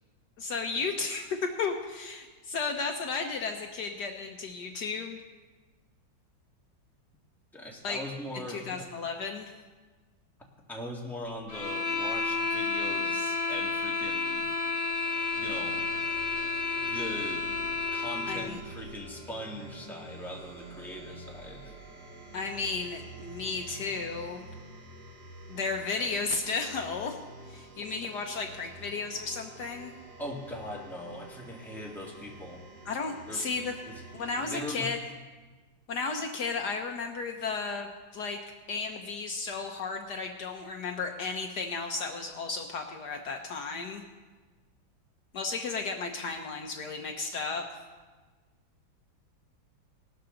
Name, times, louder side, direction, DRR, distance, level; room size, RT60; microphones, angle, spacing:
voice 1, 0.4-5.2 7.8-8.0 8.3-9.5 18.3-18.6 22.3-24.5 25.5-27.2 27.5-29.9 32.9-33.7 34.1-35.0 35.9-38.4 38.7-44.0 45.3-47.6, left 4 dB, 65° left, 4 dB, 1.3 m, -34 dB
voice 2, 7.5-8.9 10.7-14.5 15.4-16.1 16.8-17.5 17.9-21.7 30.2-32.6 33.3-33.5 33.9-34.9, left 1 dB, ahead, -2 dB, 1.7 m, -40 dB
sound 1, 11.5-18.6, left 4 dB, 20° left, 1.2 m, -31 dB
sound 2, 14.9-34.8, right 2 dB, 60° right, 1.8 m, -48 dB
18.5 x 12.5 x 3.8 m, 1.3 s
omnidirectional pair, 2.1 m